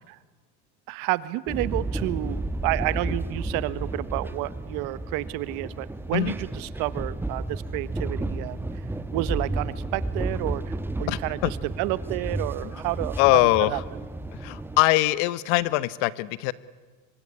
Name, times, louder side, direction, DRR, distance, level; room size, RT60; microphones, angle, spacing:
voice 1, 0.9-8.7 9.1-13.2 13.7-13.8, right 18 dB, 65° right, 16 dB, 1.4 m, -30 dB
sound 1, 1.5-14.8, right 2 dB, 5° right, 1.4 m, -32 dB
voice 2, 11.1-11.5 12.6-12.7 13.2-13.8 14.3-16.5, left 18 dB, 70° left, 17 dB, 1.3 m, -22 dB
25.5 x 24.0 x 9.8 m, 1.3 s
supercardioid pair, 120°, 36 cm